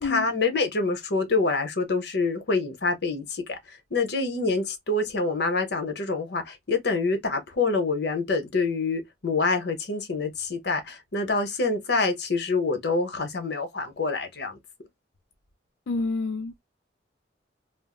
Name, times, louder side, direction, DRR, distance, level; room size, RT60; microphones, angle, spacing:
voice 1, 0.0-14.6, left 3 dB, 65° left, 0.8 m, -26 dB
voice 2, 15.9-16.6, left 3 dB, 85° left, 0.4 m, -28 dB
2.4 x 2.0 x 3.6 m
head